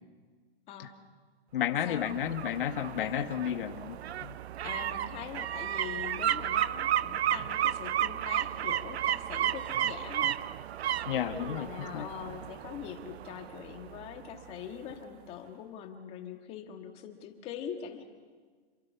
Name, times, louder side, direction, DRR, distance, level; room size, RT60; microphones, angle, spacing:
voice 1, 0.7-1.0 1.8-2.2 3.0-3.2 4.6-10.4 11.1-18.0, left 8 dB, 20° left, 5 dB, 1.6 m, -43 dB
voice 2, 1.5-4.4 11.0-12.1, left 10 dB, 55° left, 8 dB, 1.5 m, -32 dB
sound 1, 1.7-14.5 14.9-15.0, right 11 dB, 85° right, 0.7 m, -33 dB
28.0 x 24.0 x 5.8 m, 1.6 s
hypercardioid pair, 170°, 31 cm